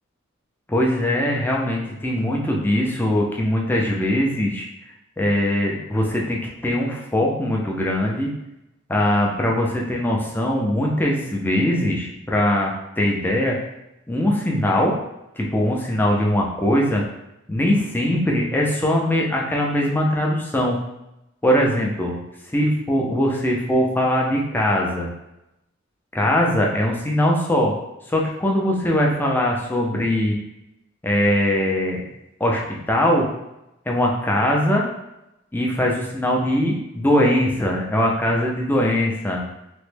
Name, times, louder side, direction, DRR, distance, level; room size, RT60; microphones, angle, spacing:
voice 1, 0.7-4.7 5.2-8.3 8.9-13.6 14.1-14.9 15.4-17.0 17.5-20.8 21.4-22.1 22.5-25.1 26.1-27.7 28.1-30.4 31.0-32.0 32.4-33.3 33.9-34.8 35.5-39.4, left 1 dB, 10° left, -2 dB, 0.4 m, -21 dB
3.0 x 2.1 x 3.2 m, 0.89 s
head